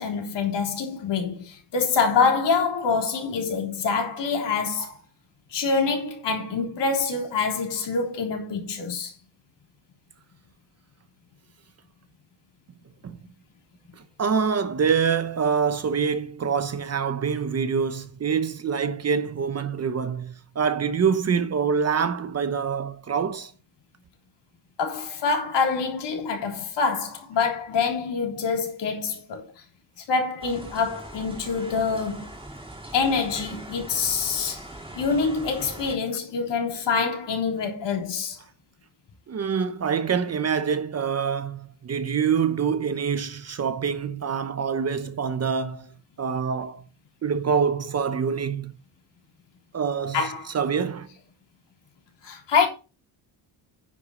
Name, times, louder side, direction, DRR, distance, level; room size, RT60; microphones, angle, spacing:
voice 1, 0.0-4.9 5.5-9.1 24.8-29.5 30.0-32.3 32.9-34.7 35.0-38.4 50.1-50.5 52.2-52.7, left 5 dB, 60° left, 3.6 m, -25 dB
voice 2, 13.9-23.5 39.3-45.9 46.2-46.8 47.2-48.8 49.7-51.1, right 6 dB, 35° right, 0.8 m, -25 dB
sound 1, 30.4-36.0, right 1 dB, 10° right, 3.0 m, -41 dB
9.9 x 8.1 x 4.2 m
cardioid pair, 170°, 47 cm